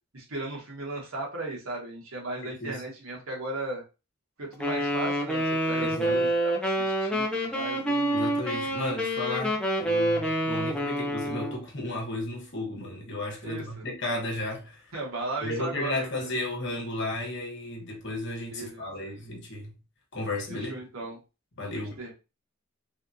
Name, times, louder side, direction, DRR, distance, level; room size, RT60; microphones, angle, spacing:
voice 1, 0.1-3.8 4.4-8.2 13.4-13.8 14.9-16.3 18.5-19.1 20.5-21.2 21.7-22.1, right 2 dB, 90° right, 1.4 m, -36 dB
Wind instrument woodwind instrument, 4.6-11.6, right 1 dB, 5° left, 0.5 m, -27 dB
voice 2, 5.8-6.2 8.1-14.9 15.4-19.8 20.1-20.7 21.6-22.0, left 1 dB, 55° left, 1.2 m, -34 dB
3.4 x 2.9 x 2.6 m
head